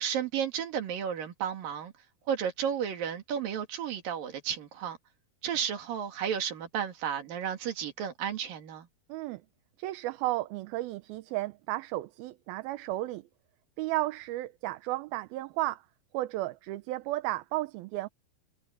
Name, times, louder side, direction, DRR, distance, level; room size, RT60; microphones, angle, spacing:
voice 1, 0.0-1.9 2.3-5.0 5.4-8.9, right 8 dB, 65° right, 4.0 m, -33 dB
voice 2, 9.1-9.4 9.8-13.2 13.8-15.8 16.1-18.1, right 17 dB, 85° right, 2.7 m, -33 dB
omnidirectional pair, 4.3 m